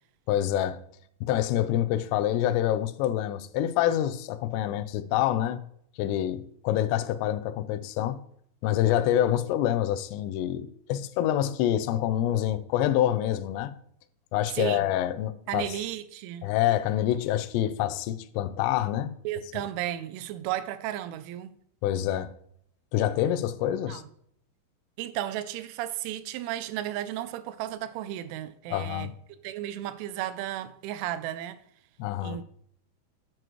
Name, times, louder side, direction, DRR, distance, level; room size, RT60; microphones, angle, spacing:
voice 1, 0.3-0.8 1.2-5.6 6.0-8.2 8.6-13.7 14.3-15.8 16.4-19.1 21.8-22.3 22.9-24.0 28.7-29.1 32.0-32.4, left 12 dB, 85° left, 2.5 m, -26 dB
voice 2, 14.6-14.9 15.5-16.5 19.3-21.6 23.8-24.0 25.0-29.1 29.4-31.6 32.2-32.4, right 12 dB, 85° right, 3.0 m, -34 dB
8.9 x 8.0 x 3.0 m
omnidirectional pair, 5.5 m